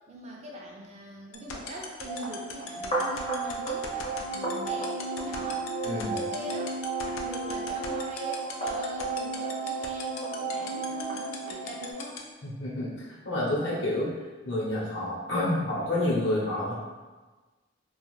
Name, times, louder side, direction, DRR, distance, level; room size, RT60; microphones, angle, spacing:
voice 1, 0.1-5.7 5.9-6.8 7.0-12.2, equal, 35° right, -2 dB, 0.4 m, -41 dB
sound 1, 1.3-12.2, left 8 dB, 90° left, 0.4 m, -38 dB
sound 2, 2.0-11.9, right 3 dB, 25° left, 0.5 m, -33 dB
voice 2, 5.8-6.2 12.4-14.1 14.4-16.7, left 1 dB, 60° left, -6 dB, 0.8 m, -29 dB
2.4 x 2.3 x 3.0 m, 1.3 s
head